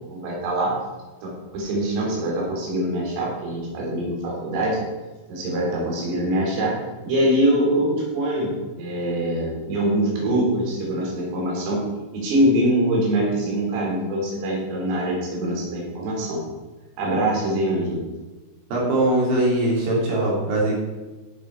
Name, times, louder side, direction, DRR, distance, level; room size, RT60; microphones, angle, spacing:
voice 1, 0.1-0.8 1.2-4.8 5.3-6.8 7.1-8.5 8.8-11.8 12.1-16.4 17.0-18.0, right 1 dB, 80° right, -3 dB, 5.9 m, -23 dB
voice 2, 18.7-20.8, right 1 dB, 60° right, -4 dB, 5.2 m, -21 dB
14.0 x 7.7 x 4.6 m, 1.2 s
omnidirectional pair, 5.9 m